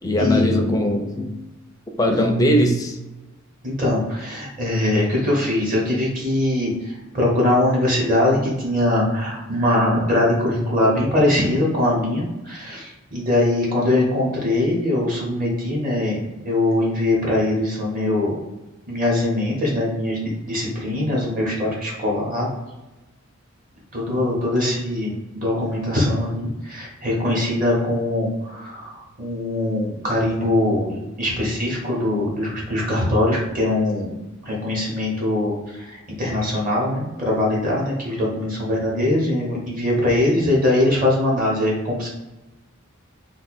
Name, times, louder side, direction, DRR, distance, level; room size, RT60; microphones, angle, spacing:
voice 1, 0.0-1.4 2.0-3.0, equal, 15° left, 0.4 m, -19 dB
voice 2, 3.6-16.2 16.4-18.4 18.9-22.5 23.9-34.2 34.4-42.1, left 1 dB, 40° right, 1.2 m, -22 dB
2.6 x 2.6 x 4.2 m
head